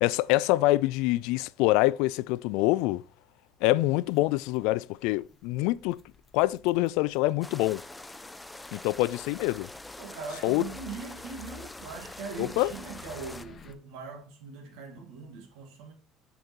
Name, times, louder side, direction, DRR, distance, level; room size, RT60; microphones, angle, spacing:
voice 1, 0.0-3.0 3.6-6.0 6.3-7.8 8.7-9.7 10.4-10.6 12.4-12.7, left 18 dB, 85° left, 0.3 m, -25 dB
sound 1, 3.6-13.7, left 7 dB, 35° left, 0.8 m, -54 dB
sound 2, 7.4-13.5, left 2 dB, 10° left, 0.5 m, -44 dB
voice 2, 10.0-15.9, right 5 dB, 85° right, 2.0 m, -41 dB
6.5 x 5.2 x 4.4 m
cardioid pair, 120°, 0 cm